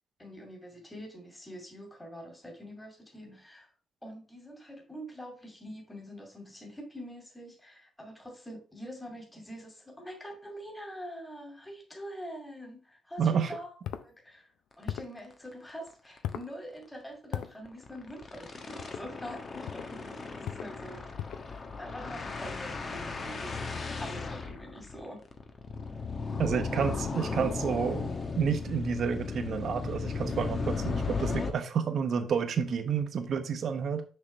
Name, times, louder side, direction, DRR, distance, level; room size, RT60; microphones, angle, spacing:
voice 1, 0.2-3.7 4.0-13.7 14.0-14.5 14.8-21.2 21.8-23.6 23.9-25.2, equal, 10° left, 2.4 m, -45 dB
voice 2, 13.2-13.5 26.4-34.0, right 7 dB, 60° right, 1.0 m, -30 dB
sound 1, 13.8-14.1 14.8-15.2 16.2-16.5 17.3-17.5 18.8-19.0 19.6-19.9 20.4-20.7 21.2-21.5, left 10 dB, 80° left, 0.5 m, -37 dB
sound 2, 14.8-15.0 15.3-15.4 15.7-15.9 16.2-16.3 17.6-31.5, left 4 dB, 40° left, 1.1 m, -36 dB
6.3 x 5.8 x 3.2 m
cardioid pair, 90°, 0 cm